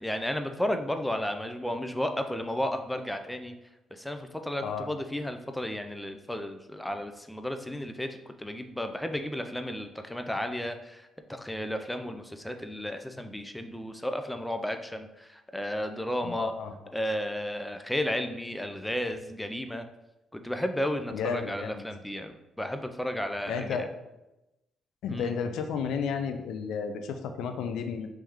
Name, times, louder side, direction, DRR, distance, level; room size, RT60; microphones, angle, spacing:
voice 1, 0.0-3.5 3.9-16.5 16.9-19.9 20.3-23.9 25.1-25.3, left 1 dB, 5° left, 6 dB, 0.4 m, -33 dB
voice 2, 16.2-16.7 21.1-21.8 23.5-23.8 25.0-28.1, left 6 dB, 80° left, 7 dB, 0.3 m, -32 dB
3.1 x 3.0 x 3.6 m, 0.96 s
supercardioid pair, 65°, 0 cm